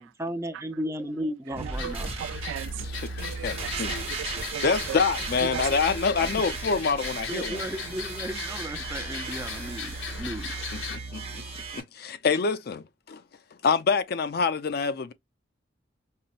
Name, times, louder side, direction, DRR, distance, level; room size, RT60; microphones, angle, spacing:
voice 1, 0.0-2.2 7.3-10.7 12.0-12.1, right 1 dB, 15° right, 0.5 m, -35 dB
sound 1, 1.5-11.7, right 2 dB, 50° right, 0.8 m, -41 dB
sound 2, 1.6-11.8, right 5 dB, 30° right, 1.1 m, -37 dB
voice 2, 1.6-1.9 2.2-2.7 3.2-4.7 5.5-5.6, right 8 dB, 85° right, 0.3 m, -37 dB
sound 3, 1.7-11.0, left 5 dB, 90° left, 0.9 m, -38 dB
voice 3, 2.8-4.0 4.6-7.6 10.9-11.4 11.7-13.2 13.6-15.1, left 5 dB, 55° left, 0.4 m, -26 dB
5.4 x 2.0 x 2.4 m
head